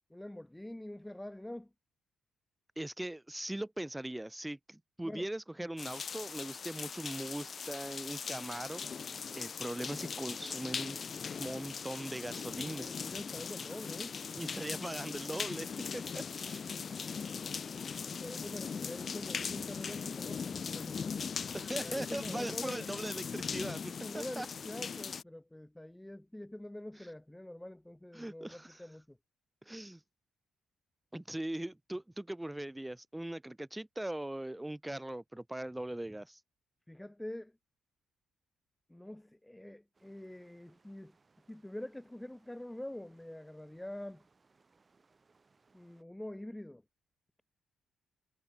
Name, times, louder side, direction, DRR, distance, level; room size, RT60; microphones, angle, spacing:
voice 1, 0.0-1.7 5.0-5.3 12.8-14.2 18.1-21.1 21.7-22.9 24.0-29.2 36.9-37.5 38.9-41.1 41.5-44.2 45.7-46.8, left 1 dB, 5° left, 1.5 m, -45 dB
voice 2, 2.8-11.0 11.4-12.9 14.4-15.7 15.9-16.6 21.5-24.5 28.1-28.8 29.7-30.0 31.1-36.4, right 1 dB, 10° right, 0.9 m, -40 dB
sound 1, 5.8-25.2, left 6 dB, 45° left, 1.0 m, -40 dB
sound 2, 39.9-46.0, right 4 dB, 30° right, 5.3 m, -70 dB
cardioid pair, 90°, 0 cm